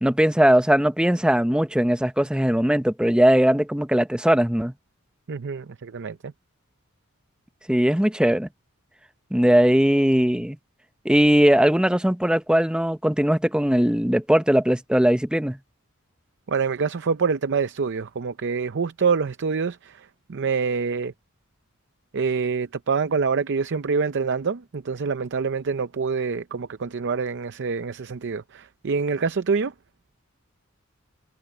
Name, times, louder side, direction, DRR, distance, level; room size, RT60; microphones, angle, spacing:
voice 1, 0.0-4.7 7.7-8.5 9.3-10.6 11.0-15.6, equal, 5° right, 0.7 m, -19 dB
voice 2, 5.3-6.2 16.5-21.1 22.1-29.7, right 5 dB, 60° right, 0.6 m, -26 dB
head